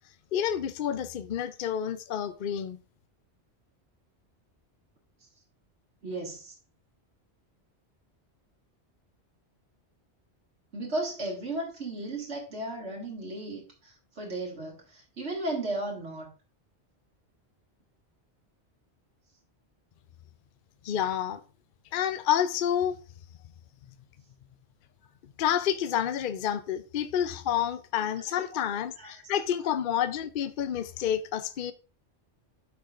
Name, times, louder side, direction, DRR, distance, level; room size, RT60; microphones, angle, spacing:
voice 1, 0.3-2.8 20.8-21.4 21.9-22.9 25.4-31.7, left 9 dB, 55° left, 0.7 m, -29 dB
voice 2, 6.0-6.5 10.7-16.3 27.6-27.7 28.0-28.1 28.5-29.3, right 2 dB, 75° right, 2.3 m, -35 dB
12.5 x 4.8 x 2.5 m
omnidirectional pair, 1.2 m